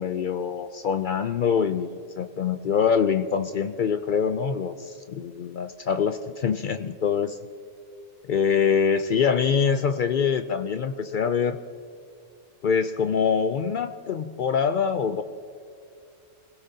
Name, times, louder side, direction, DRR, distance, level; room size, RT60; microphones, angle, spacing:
voice 1, 0.0-7.4 8.3-11.6 12.6-15.2, left 6 dB, 75° left, 9 dB, 0.4 m, -24 dB
26.0 x 16.5 x 2.8 m, 2.3 s
omnidirectional pair, 1.4 m